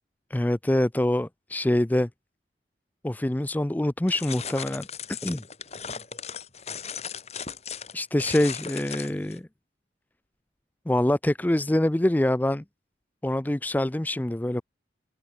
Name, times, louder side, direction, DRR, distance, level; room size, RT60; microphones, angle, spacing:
voice 1, 0.3-2.1 3.0-4.9 5.2-5.4 7.9-9.5 10.9-12.6 13.2-14.6, left 1 dB, 10° left, 0.4 m, -25 dB
sound 1, 4.1-9.4, left 7 dB, 35° left, 5.2 m, -37 dB
head